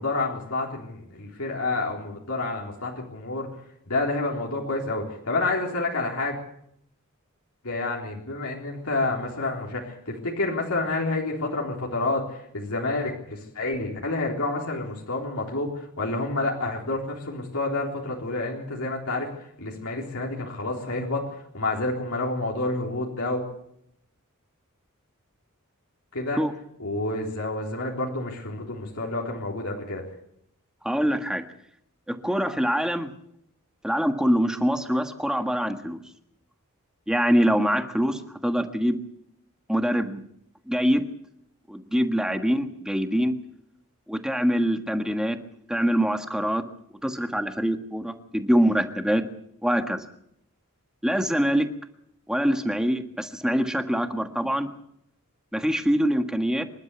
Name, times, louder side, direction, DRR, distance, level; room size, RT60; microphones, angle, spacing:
voice 1, 0.0-3.5 3.9-6.3 7.6-23.4 26.1-26.4 26.8-30.0, left 2 dB, 75° left, -2 dB, 3.8 m, -29 dB
voice 2, 30.8-31.4 32.1-33.1 33.8-36.0 37.1-39.0 39.7-40.2 40.7-41.0 41.7-43.3 44.1-45.4 45.7-46.6 47.0-49.2 49.6-50.0 51.0-51.7 52.3-54.7 55.5-56.6, equal, 5° right, 6 dB, 1.5 m, -24 dB
26.5 x 12.0 x 8.2 m, 0.74 s
head